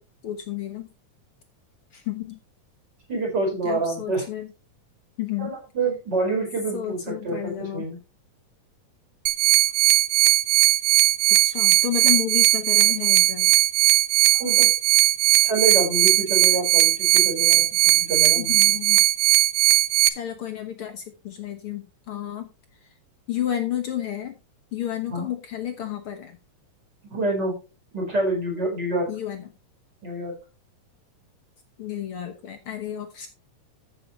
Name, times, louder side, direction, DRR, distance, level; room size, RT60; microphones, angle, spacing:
voice 1, 0.2-0.9 1.9-2.4 3.6-4.5 5.2-5.5 6.7-7.9 11.3-13.5 18.3-19.1 20.1-22.5 22.8-22.9 23.3-24.4 24.7-26.4 29.1-29.5 31.8-33.3, left 11 dB, 65° left, 6 dB, 1.4 m, -31 dB
voice 2, 3.1-4.2 5.4-8.0 14.4-14.7 15.4-18.7 25.1-25.3 27.1-27.6 27.9-29.1 30.0-30.3, right 2 dB, 30° right, -2 dB, 5.2 m, -27 dB
sound 1, 9.3-20.1, right 17 dB, 90° right, 2.3 m, -18 dB
14.5 x 6.3 x 3.1 m, 0.30 s
omnidirectional pair, 3.8 m